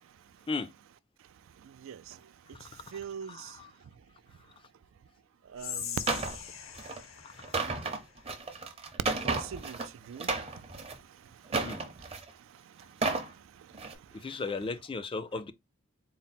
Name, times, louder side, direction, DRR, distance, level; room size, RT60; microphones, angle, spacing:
voice 1, 1.6-2.3 2.6-3.6 5.5-6.0 9.2-10.8 11.2-11.7 12.7-12.8 13.2-13.7, right 7 dB, 80° right, 0.3 m, -43 dB
voice 2, 2.6-3.7 7.2-7.7 11.6-11.8 14.1-15.5, left 4 dB, 25° left, 0.3 m, -37 dB
Whispering, 5.5-8.8, left 8 dB, 85° left, 0.7 m, -42 dB
sound 1, 6.1-6.4 6.8-7.0 7.4-9.9 10.2-11.0 11.5-12.3 12.8-13.3 13.7-13.9, right 3 dB, 30° right, 0.7 m, -32 dB
4.1 x 2.0 x 4.1 m
head